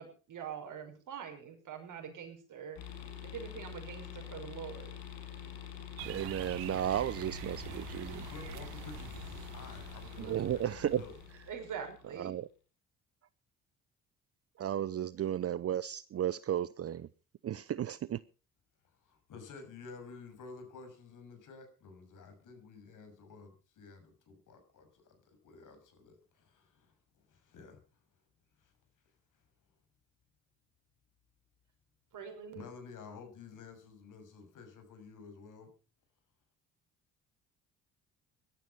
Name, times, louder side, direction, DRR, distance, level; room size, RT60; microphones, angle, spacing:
voice 1, 0.0-2.8 3.3-4.9 11.5-12.4 32.1-32.7, right 7 dB, 55° right, 5 dB, 5.8 m, -44 dB
sound 1, 2.8-12.2, left 9 dB, 75° left, 5.7 m, -46 dB
voice 2, 6.0-8.2 10.2-11.0 12.2-12.5 14.6-17.1 17.4-18.2, right 10 dB, 40° right, 19 dB, 0.7 m, -34 dB
sound 2, 6.0-11.5, right 16 dB, 75° right, 1.1 m, -47 dB
voice 3, 8.3-10.6 11.0-11.1 18.8-27.8 28.6-28.7 32.5-35.7, left 4 dB, 60° left, 7 dB, 7.0 m, -51 dB
17.5 x 12.5 x 5.6 m, 0.37 s
hypercardioid pair, 60°, 36 cm